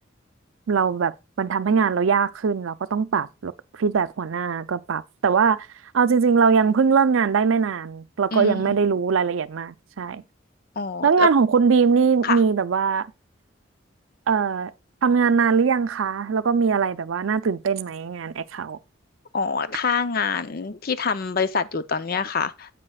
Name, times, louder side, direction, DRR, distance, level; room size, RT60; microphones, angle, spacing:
voice 1, 0.7-5.7 5.9-10.2 11.0-13.1 14.3-14.7 15.0-18.8, right 5 dB, 85° right, 0.5 m, -21 dB
voice 2, 8.3-8.8 10.8-11.3 12.2-12.4 19.3-22.7, left 5 dB, 50° left, 0.6 m, -25 dB
9.8 x 8.3 x 2.3 m
head